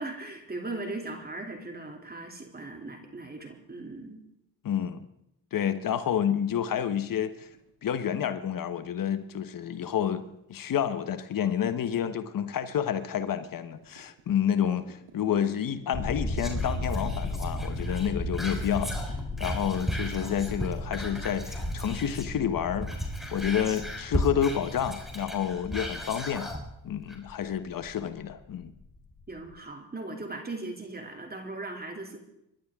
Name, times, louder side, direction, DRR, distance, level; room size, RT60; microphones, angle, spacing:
voice 1, 0.0-4.2 29.3-32.2, right 2 dB, 25° right, 3 dB, 2.9 m, -38 dB
voice 2, 4.6-5.1 5.5-7.5 7.8-18.9 19.4-22.9 23.3-26.5 26.8-28.7, left 9 dB, 60° left, 11 dB, 1.2 m, -29 dB
sound 1, 6.8-20.6, right 4 dB, 90° right, 5.8 m, -54 dB
sound 2, 15.9-29.6, left 2 dB, 30° left, 3.3 m, -36 dB
Whispering, 16.4-22.4 22.7-26.6 27.1-27.2, equal, ahead, 3.9 m, -35 dB
25.5 x 11.5 x 3.7 m, 0.82 s
cardioid pair, 75°, 38 cm